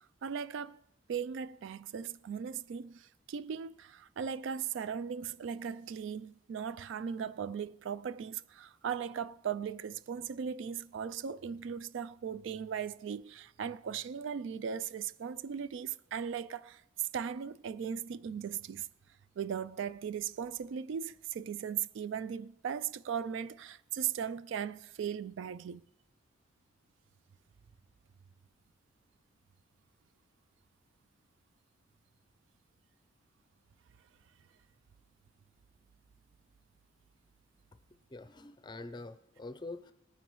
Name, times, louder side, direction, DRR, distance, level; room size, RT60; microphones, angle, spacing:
voice 1, 0.2-0.8 1.1-18.9 19.4-25.8, right 7 dB, 70° right, 0.3 m, -38 dB
voice 2, 38.1-39.9, left 2 dB, 20° left, 0.5 m, -45 dB
19.5 x 9.3 x 3.1 m
head